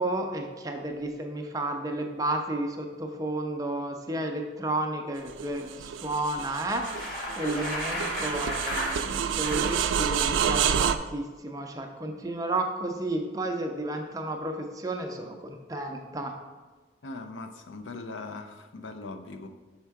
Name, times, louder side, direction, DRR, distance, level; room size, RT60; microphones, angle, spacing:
voice 1, 0.0-16.3, right 2 dB, 20° right, 3 dB, 0.5 m, -32 dB
sound 1, 5.3-11.0, right 8 dB, 85° right, 0.3 m, -29 dB
Bicycle, 6.5-9.8, left 1 dB, 50° left, 1.9 m, -34 dB
voice 2, 17.0-19.5, left 3 dB, 90° left, 7 dB, 0.6 m, -40 dB
5.9 x 4.4 x 4.6 m, 1.3 s
head